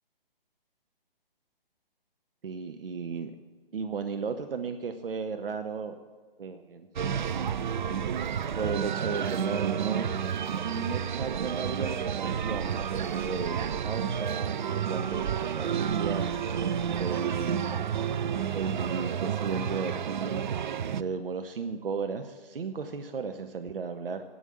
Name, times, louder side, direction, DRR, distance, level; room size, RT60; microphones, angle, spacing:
voice 1, 2.4-3.3 3.7-5.9 6.4-6.9 8.5-10.1 10.6-16.3 17.0-17.6 18.5-20.4 21.0-24.2, right 5 dB, 70° right, 8 dB, 0.9 m, -34 dB
sound 1, 7.0-21.0, right 8 dB, 55° right, 0.5 m, -30 dB
11.0 x 8.2 x 7.4 m, 1.5 s
figure-of-eight pair, 140°, 29 cm